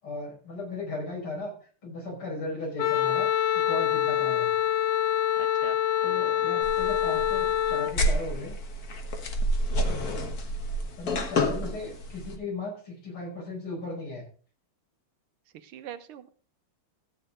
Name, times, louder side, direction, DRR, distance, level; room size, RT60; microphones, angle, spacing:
voice 1, 0.0-1.5 1.8-3.3 3.5-4.5 6.0-8.6 9.7-10.2 11.0-14.2, left 2 dB, 85° left, -2 dB, 6.1 m, -36 dB
Wind instrument woodwind instrument, 2.8-7.9, left 11 dB, 70° left, 1.1 m, -25 dB
voice 2, 5.4-5.8 15.5-16.3, right 9 dB, 80° right, 10 dB, 1.8 m, -42 dB
sound 1, 6.6-12.4, equal, 50° left, 1.6 m, -29 dB
14.0 x 8.9 x 3.7 m, 0.40 s
omnidirectional pair, 2.3 m